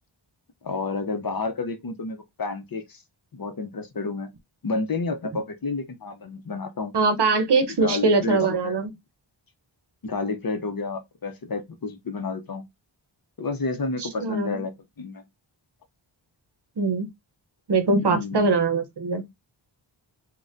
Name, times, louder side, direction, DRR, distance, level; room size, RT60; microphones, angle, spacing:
voice 1, 0.6-3.0 3.3-4.3 4.6-6.9 7.8-8.8 10.0-12.6 13.4-14.7 15.0-15.2 18.0-18.6, left 3 dB, 50° left, 0.7 m, -30 dB
voice 2, 6.9-8.9 14.0-14.7 16.8-17.1 17.7-19.2, right 3 dB, 55° right, 0.8 m, -22 dB
4.0 x 2.2 x 2.5 m
wide cardioid pair, 70°, 48 cm